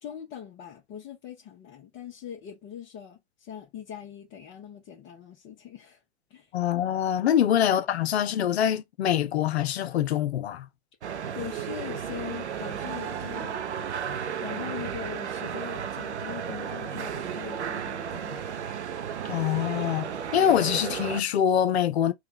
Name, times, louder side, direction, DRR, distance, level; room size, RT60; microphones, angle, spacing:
voice 1, 0.0-6.0 6.3-6.5 11.3-13.9 14.4-18.4, left 9 dB, 35° left, 1.1 m, -41 dB
voice 2, 6.5-10.7 19.2-22.1, left 10 dB, 70° left, 0.8 m, -24 dB
sound 1, 11.0-21.2, right 8 dB, 85° right, 0.7 m, -34 dB
3.6 x 2.4 x 4.3 m
hypercardioid pair, 110°, 33 cm